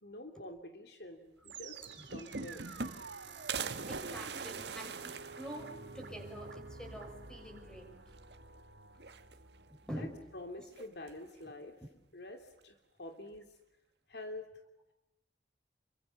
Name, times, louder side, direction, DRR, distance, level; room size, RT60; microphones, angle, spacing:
voice 1, 0.0-2.6 9.9-10.1 10.3-11.8 12.1-13.5 14.1-14.5, left 1 dB, 70° left, 6 dB, 2.9 m, -47 dB
sound 1, 1.4-10.6, right 4 dB, 90° right, 4.0 m, -50 dB
sound 2, 1.5-1.6 1.9-3.2 3.5-6.1 6.5-6.6 6.9-7.0 8.1-8.6 8.9-9.7 10.7-11.3, right 5 dB, 70° right, 1.8 m, -42 dB
voice 2, 3.9-8.0 9.7-10.2, equal, 5° left, 3 dB, 6.3 m, -46 dB
29.0 x 24.5 x 7.1 m, 0.89 s
head